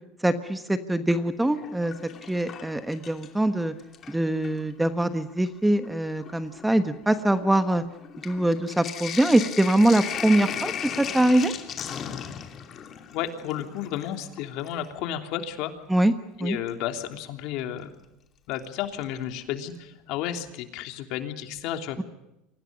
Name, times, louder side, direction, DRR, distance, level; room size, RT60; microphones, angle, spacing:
voice 1, 0.2-1.9 2.3-3.7 4.1-7.8 8.2-10.7 11.0-11.5 15.9-16.1 16.4-16.6, right 1 dB, 5° right, 9 dB, 1.2 m, -23 dB
Sink (filling or washing), 1.4-3.5 3.8-4.6 5.4-5.5 5.8-14.9 16.7-16.8 18.6-19.0 19.4-19.5 19.7-19.8, left 8 dB, 35° left, 2.8 m, -37 dB
voice 2, 13.1-15.7 16.4-17.9 18.5-22.0, left 10 dB, 60° left, 6 dB, 3.2 m, -32 dB
30.0 x 25.0 x 5.2 m, 0.91 s
supercardioid pair, 145°, 0 cm